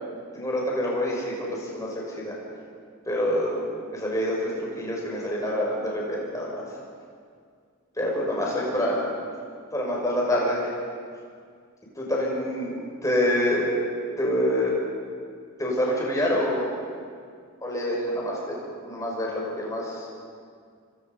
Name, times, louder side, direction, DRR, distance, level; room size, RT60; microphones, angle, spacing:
voice 1, 0.3-2.3 3.1-3.6 3.9-4.5 4.8-6.6 7.9-9.1 9.7-10.7 12.0-13.7 14.2-14.8 15.6-16.7 17.6-18.5 18.8-20.1, left 1 dB, 15° left, -3 dB, 6.1 m, -26 dB
27.0 x 25.5 x 5.5 m, 2.1 s
head